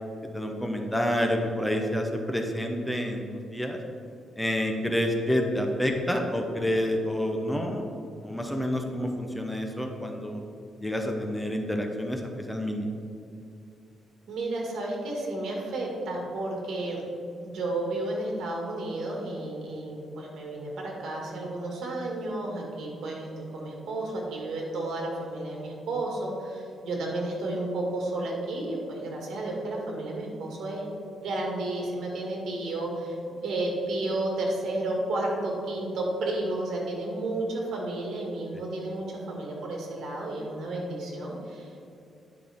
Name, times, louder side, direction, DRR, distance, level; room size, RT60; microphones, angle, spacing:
voice 1, 0.3-3.2 3.5-3.8 4.4-7.8 8.2-10.4 10.8-12.9, equal, 5° left, 2 dB, 0.7 m, -28 dB
voice 2, 14.3-17.0 17.4-30.9 31.2-41.7, right 2 dB, 75° right, -1 dB, 2.0 m, -32 dB
10.5 x 5.6 x 3.6 m, 2.5 s
cardioid pair, 130°, 0 cm